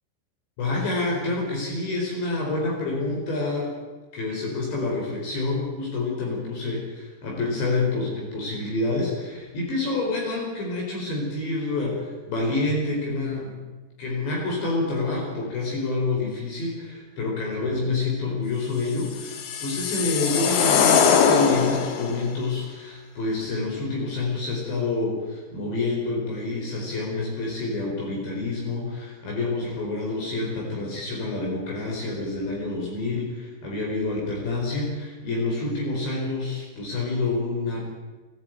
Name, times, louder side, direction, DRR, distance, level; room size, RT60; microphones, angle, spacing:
voice 1, 0.6-3.8 4.1-6.8 7.2-13.6 14.0-37.8, left 3 dB, 60° left, -2 dB, 6.7 m, -28 dB
sound 1, 19.0-22.2, left 6 dB, 90° left, 4.6 m, -21 dB
24.0 x 15.0 x 9.2 m, 1.3 s
omnidirectional pair, 5.8 m